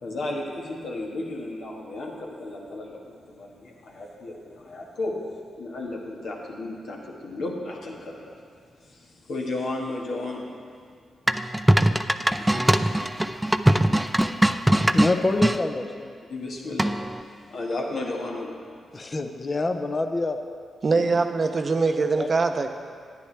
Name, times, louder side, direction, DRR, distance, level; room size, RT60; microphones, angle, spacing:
voice 1, 0.0-5.1 5.6-8.4 8.9-10.5 12.3-13.0 16.3-17.1 17.5-18.6 20.9-21.2, left 2 dB, 70° left, -2 dB, 1.4 m, -34 dB
sound 1, 11.3-15.6 16.8-17.2, right 1 dB, 10° right, 0.4 m, -21 dB
voice 2, 14.9-16.1 18.9-20.4 21.9-22.3, left 2 dB, 35° left, 7 dB, 0.7 m, -26 dB
voice 3, 20.8-22.7, right 4 dB, 50° right, 7 dB, 0.6 m, -22 dB
10.5 x 9.5 x 3.3 m, 2.1 s
supercardioid pair, 40°, 0 cm